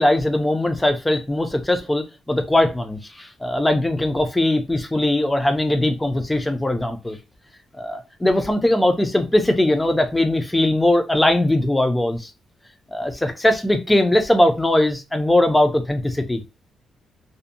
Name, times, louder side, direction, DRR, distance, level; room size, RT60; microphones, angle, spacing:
voice 1, 0.0-7.2 7.8-12.3 12.9-16.4, left 1 dB, 10° left, 0.4 m, -20 dB
2.5 x 2.1 x 2.5 m
cardioid pair, 170°, 0 cm